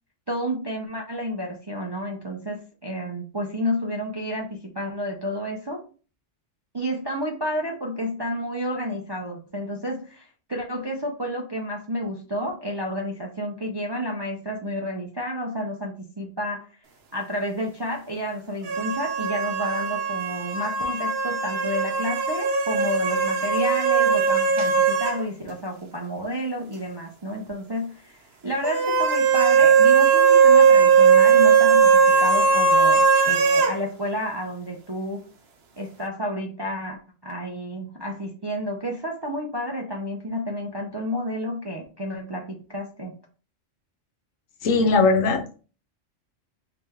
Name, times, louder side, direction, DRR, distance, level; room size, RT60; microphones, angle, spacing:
voice 1, 0.3-5.8 6.7-16.7 17.1-35.2 35.8-43.1, equal, 40° right, 0 dB, 0.3 m, -30 dB
sound 1, 18.6-25.2 25.5-25.6 28.6-33.7, right 6 dB, 60° right, 0.9 m, -19 dB
voice 2, 44.6-45.6, left 3 dB, 90° left, 7 dB, 1.1 m, -20 dB
3.2 x 2.9 x 3.5 m, 0.36 s
omnidirectional pair, 1.3 m